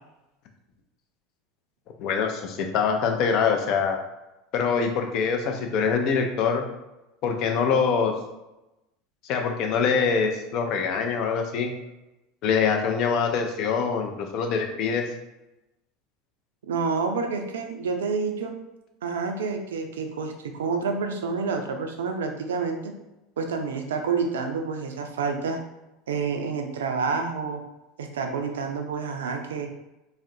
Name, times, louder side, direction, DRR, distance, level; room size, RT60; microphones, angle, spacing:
voice 1, 2.0-4.0 4.5-6.6 7.2-8.1 9.2-11.7 12.4-15.1, left 6 dB, 55° left, 4 dB, 0.4 m, -24 dB
voice 2, 16.7-18.5 19.0-22.9 23.4-25.6 26.1-27.6 28.0-29.7, right 5 dB, 80° right, 4 dB, 0.3 m, -28 dB
2.4 x 2.1 x 2.6 m, 0.97 s
hypercardioid pair, 80°, 0 cm